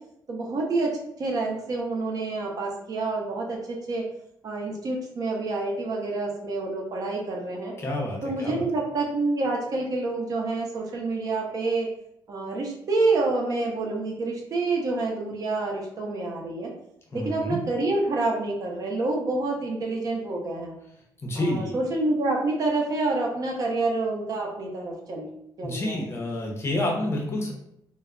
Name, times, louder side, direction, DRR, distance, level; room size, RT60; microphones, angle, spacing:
voice 1, 0.3-0.9 1.2-4.0 4.4-7.7 8.2-11.9 12.3-16.7 17.1-20.8 21.3-25.3 25.6-26.0, right 3 dB, 50° right, -1 dB, 0.6 m, -27 dB
voice 2, 7.8-8.6 17.1-17.6 21.2-21.7 25.6-27.5, left 1 dB, 30° left, 0 dB, 0.6 m, -29 dB
2.2 x 2.0 x 3.5 m, 0.77 s
cardioid pair, 125°, 8 cm